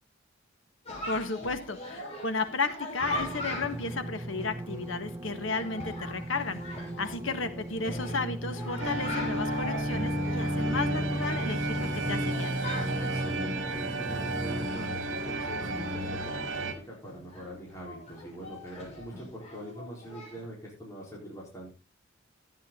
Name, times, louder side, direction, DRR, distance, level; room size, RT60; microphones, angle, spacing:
Chatter, 0.8-20.4, left 1 dB, 35° left, 6.2 m, -42 dB
voice 1, 1.1-12.6, left 4 dB, 80° left, 8 dB, 1.6 m, -33 dB
sound 1, 3.0-14.7, right 1 dB, 15° right, 0.6 m, -37 dB
cathedral barcelona, 8.8-16.7, right 1 dB, 75° right, 1.9 m, -32 dB
voice 2, 13.0-21.7, right 1 dB, 15° left, -4 dB, 4.0 m, -43 dB
12.5 x 9.5 x 3.7 m, 0.29 s
head